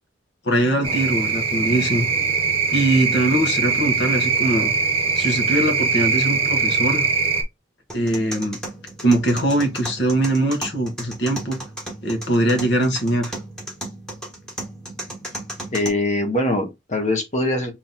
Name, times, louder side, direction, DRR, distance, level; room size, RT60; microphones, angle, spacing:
voice 1, 0.4-2.1 2.7-4.7 5.1-7.1 7.9-8.6 9.0-11.6 12.0-13.4, right 1 dB, 60° left, 1.4 m, -21 dB
sound 1, 0.8-7.4, right 4 dB, 30° right, 0.9 m, -21 dB
sound 2, 7.9-15.9, right 1 dB, 5° left, 1.3 m, -35 dB
voice 2, 15.7-17.7, left 1 dB, 35° left, 1.3 m, -22 dB
3.9 x 3.0 x 4.0 m
head